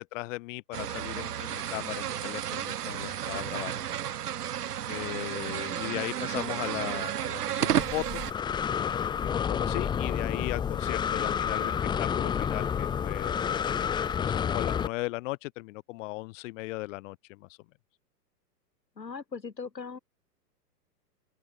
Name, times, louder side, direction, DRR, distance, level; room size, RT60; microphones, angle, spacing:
voice 1, 0.0-3.8 4.9-8.2 8.8-8.9 9.2-17.6, left 22 dB, 50° left, 6.9 m, -37 dB
sound 1, 0.7-8.3, right 10 dB, 65° right, 2.3 m, -32 dB
Breathing, 7.8-14.9, left 8 dB, 10° left, 0.6 m, -29 dB
voice 2, 19.0-20.0, left 5 dB, 85° left, 7.5 m, -39 dB
open air
figure-of-eight pair, 110°, 49 cm